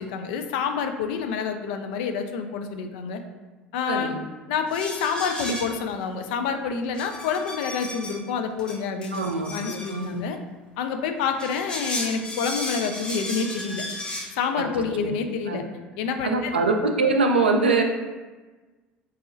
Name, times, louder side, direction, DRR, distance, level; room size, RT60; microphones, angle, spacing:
voice 1, 0.0-3.2 3.7-4.1 4.5-10.4 10.8-13.8 14.3-15.6 16.0-16.6, left 6 dB, 60° left, 6 dB, 0.3 m, -28 dB
voice 2, 3.9-4.2 9.1-10.3 15.0-15.1 15.5-15.6 16.2-17.8, right 3 dB, 80° right, 3 dB, 0.3 m, -23 dB
sound 1, 4.7-5.9 6.9-8.2 8.6-10.1 11.2-14.3, left 1 dB, 15° left, 0.6 m, -34 dB
4.0 x 2.6 x 2.5 m, 1.2 s
figure-of-eight pair, 65°, 6 cm